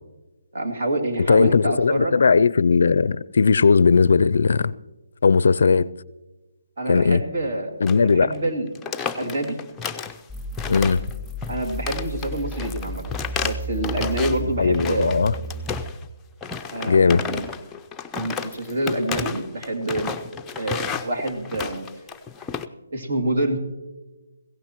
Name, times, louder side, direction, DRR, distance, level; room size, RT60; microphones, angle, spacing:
voice 1, 0.5-2.2 6.8-8.7 9.2-9.6 11.5-13.1 13.4-15.3 16.7-17.5 18.1-20.2 20.6-21.9 22.9-23.6, right 1 dB, 55° right, 2.5 m, -27 dB
voice 2, 1.3-4.7 5.2-5.9 6.9-7.2 7.8-8.3 10.7-11.0 14.6-15.3 16.9-17.2, left 5 dB, 65° left, 0.4 m, -18 dB
sound 1, 7.8-8.1 8.3-8.5 8.7-10.2 10.6-11.1 11.4-14.4 14.7-16.1 16.4-22.6, left 6 dB, 10° left, 0.5 m, -32 dB
sound 2, 10.3-15.9, equal, 10° right, 1.8 m, -33 dB
20.5 x 16.5 x 3.0 m
figure-of-eight pair, 150°, 0 cm